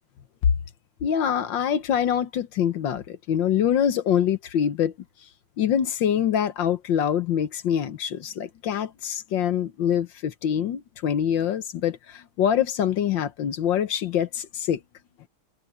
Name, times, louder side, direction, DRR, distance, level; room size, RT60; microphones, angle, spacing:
voice 1, 1.0-4.9 5.6-14.8, left 9 dB, 65° left, 1.6 m, -25 dB
omnidirectional pair, 2.3 m